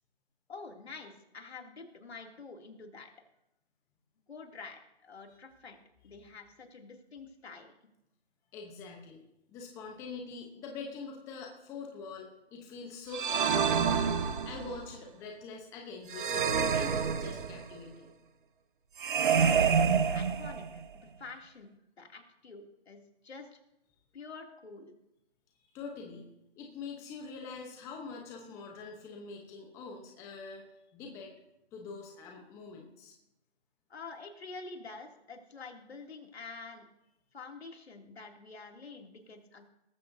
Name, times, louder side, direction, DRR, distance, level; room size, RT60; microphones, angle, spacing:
voice 1, 0.5-3.1 4.3-5.8 6.0-7.7 19.2-21.7 22.0-23.6 24.1-24.9 33.9-36.9 37.3-39.6, left 4 dB, 70° left, 2 dB, 2.9 m, -47 dB
voice 2, 8.5-9.2 9.5-18.1 25.7-26.3 26.6-30.6 30.9-31.3 31.7-33.1, left 4 dB, 10° left, 1 dB, 0.9 m, -44 dB
sound 1, 13.1-14.8 16.1-17.8 19.0-20.8, right 6 dB, 50° right, 1.1 m, -28 dB
19.0 x 14.5 x 2.7 m, 0.87 s
hypercardioid pair, 155°, 32 cm